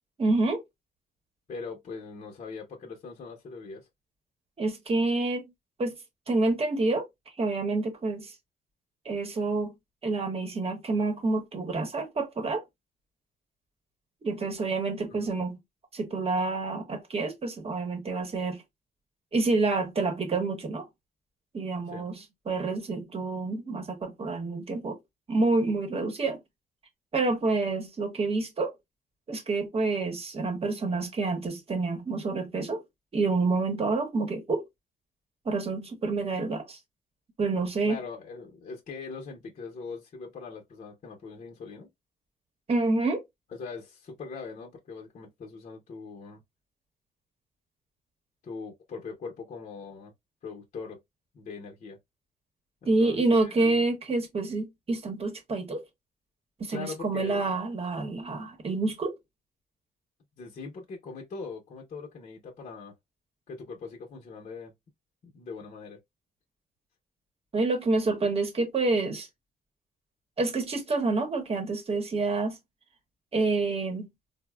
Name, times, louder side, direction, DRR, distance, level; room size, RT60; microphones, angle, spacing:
voice 1, 0.2-0.6 4.6-5.4 5.8-6.0 6.3-7.1 7.4-8.3 9.0-9.7 10.0-12.6 14.2-15.6 15.9-18.6 19.3-20.9 21.5-22.2 22.5-25.0 25.3-26.4 27.1-28.7 29.3-32.8 33.1-34.6 35.4-36.8 37.4-38.0 42.7-43.2 52.9-55.8 56.6-59.2 67.5-69.3 70.4-72.6 73.3-74.1, right 3 dB, 40° right, 0.9 m, -28 dB
voice 2, 1.5-3.9 15.1-15.4 21.9-22.1 37.9-41.9 43.5-46.4 48.4-50.1 50.4-51.0 51.3-52.0 52.8-53.8 56.7-57.4 60.4-62.9 63.5-64.7 65.2-66.0, left 4 dB, 50° left, 0.8 m, -41 dB
4.0 x 2.0 x 2.2 m
cardioid pair, 100°, 16 cm